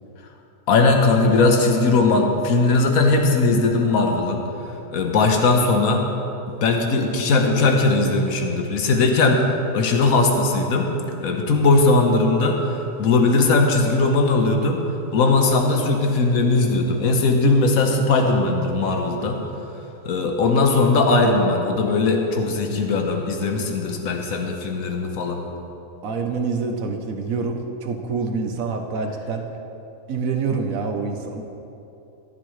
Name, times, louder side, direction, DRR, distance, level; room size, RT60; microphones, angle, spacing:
voice 1, 0.7-4.4 4.9-6.0 6.6-9.4 9.7-10.9 11.2-12.6 13.0-14.8 15.1-19.4 20.0-25.4, left 3 dB, 70° left, 3 dB, 1.5 m, -19 dB
voice 2, 26.0-29.4 30.1-31.4, right 4 dB, 65° right, 4 dB, 1.3 m, -26 dB
14.0 x 11.5 x 3.3 m, 2.9 s
omnidirectional pair, 1.6 m